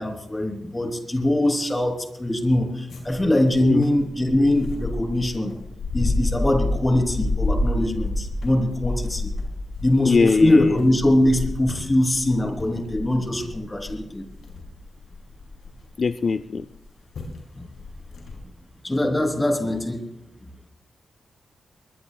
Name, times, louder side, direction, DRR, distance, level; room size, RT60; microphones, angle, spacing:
voice 1, 0.0-5.5 5.9-9.3 9.8-14.3 17.6-17.7 18.8-20.0, left 1 dB, 15° left, 4 dB, 3.4 m, -22 dB
sound 1, 2.9-16.0 16.7-16.9 17.1-17.4 17.8-18.4, left 2 dB, 70° left, 5.2 m, -29 dB
voice 2, 10.1-10.8 16.0-16.7, left 4 dB, 45° left, 13 dB, 0.5 m, -21 dB
23.0 x 20.5 x 2.3 m, 0.86 s
wide cardioid pair, 110°, 0 cm